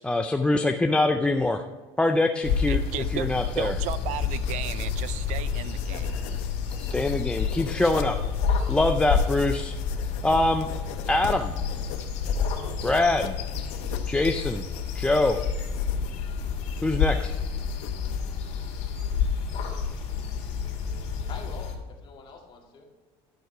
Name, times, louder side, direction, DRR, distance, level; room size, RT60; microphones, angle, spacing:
voice 1, 0.0-1.6 2.0-2.8 3.1-3.7 6.8-8.2 8.7-9.8 10.2-10.7 11.1-11.5 12.8-13.4 14.1-14.7 15.0-15.4 16.8-17.4, left 2 dB, 10° left, 5 dB, 0.4 m, -24 dB
sound 1, 2.4-21.7, left 6 dB, 55° left, 2.3 m, -29 dB
sound 2, 2.6-18.3, left 8 dB, 85° left, 0.8 m, -42 dB
voice 2, 2.7-3.3 3.6-6.1, right 13 dB, 60° right, 16 dB, 0.5 m, -35 dB
voice 3, 21.2-22.9, left 4 dB, 35° left, 0 dB, 2.1 m, -45 dB
11.0 x 6.2 x 4.6 m, 1.3 s
cardioid pair, 135°, 14 cm